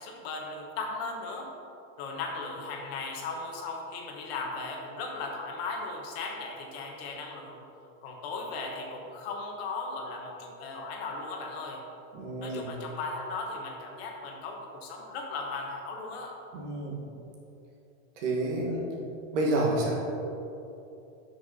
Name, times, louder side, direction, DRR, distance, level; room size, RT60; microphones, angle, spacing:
voice 1, 0.0-1.5 2.0-7.6 8.0-11.8 12.4-16.3, left 3 dB, 45° left, 1 dB, 1.3 m, -37 dB
voice 2, 12.1-12.7 16.5-17.0 18.2-18.9 19.3-20.0, right 1 dB, 60° right, -2 dB, 2.1 m, -29 dB
10.0 x 6.0 x 4.2 m, 2.9 s
supercardioid pair, 170°, 42 cm